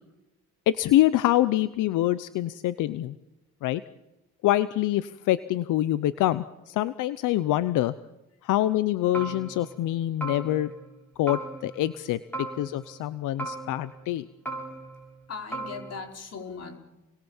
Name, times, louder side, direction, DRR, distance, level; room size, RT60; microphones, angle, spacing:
voice 1, 0.7-3.1 3.6-3.8 4.4-7.9 8.4-10.7 11.2-14.3, left 14 dB, 90° left, 14 dB, 0.8 m, -25 dB
sound 1, 9.1-9.9 10.2-10.9 11.3-12.0 12.3-13.1 13.4-14.2 14.4-15.2 15.5-16.0, right 2 dB, 5° left, 7.2 m, -37 dB
voice 2, 15.3-16.8, left 5 dB, 55° left, 4 dB, 4.9 m, -38 dB
29.5 x 22.0 x 7.2 m, 0.99 s
cardioid pair, 90°, 30 cm